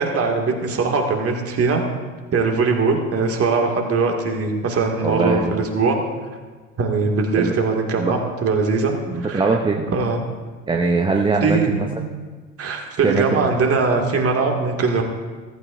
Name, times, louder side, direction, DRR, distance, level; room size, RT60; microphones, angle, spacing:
voice 1, 0.0-1.8 2.3-6.0 6.8-9.4 9.9-10.2 11.4-11.9 12.6-15.0, right 4 dB, 30° right, 2 dB, 2.1 m, -21 dB
voice 2, 5.0-5.6 7.3-7.6 8.0-8.2 9.1-9.9 10.7-11.9 13.0-13.5, right 3 dB, 10° right, 2 dB, 0.7 m, -21 dB
14.5 x 14.5 x 2.6 m, 1.4 s
hypercardioid pair, 80°, 44 cm